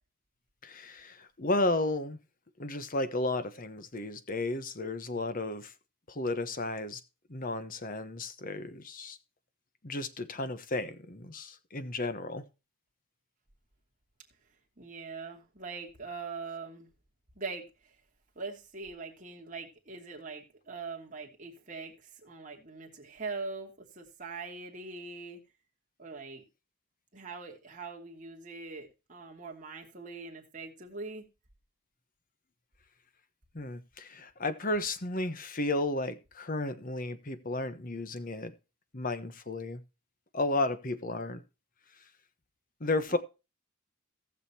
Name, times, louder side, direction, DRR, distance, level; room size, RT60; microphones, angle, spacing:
voice 1, 0.6-2.2 2.6-5.7 6.1-7.0 7.3-9.2 9.8-12.4 33.5-38.5 38.9-39.8 40.3-41.4 42.8-43.2, left 2 dB, 40° left, 1.1 m, -33 dB
voice 2, 14.8-16.9 17.4-17.7 18.4-22.0 22.2-25.4 26.0-26.4 27.1-31.2 43.1-43.2, right 4 dB, 35° right, 2.7 m, -42 dB
18.5 x 6.7 x 2.8 m
head